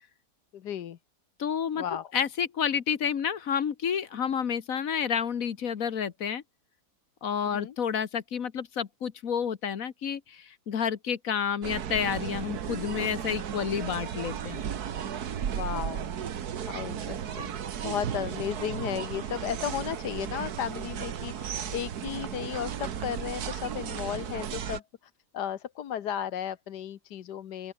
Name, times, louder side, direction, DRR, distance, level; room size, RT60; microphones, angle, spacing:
voice 1, 0.5-1.0 1.8-2.1 7.4-7.7 15.6-16.1 16.7-17.5 17.8-24.8 25.3-27.7, left 9 dB, 80° left, 1.6 m, -34 dB
voice 2, 1.4-1.8 2.1-6.4 7.2-14.6, left 7 dB, 55° left, 1.5 m, -30 dB
sound 1, 11.6-24.8, right 8 dB, 70° right, 1.7 m, -35 dB
open air
omnidirectional pair, 1.8 m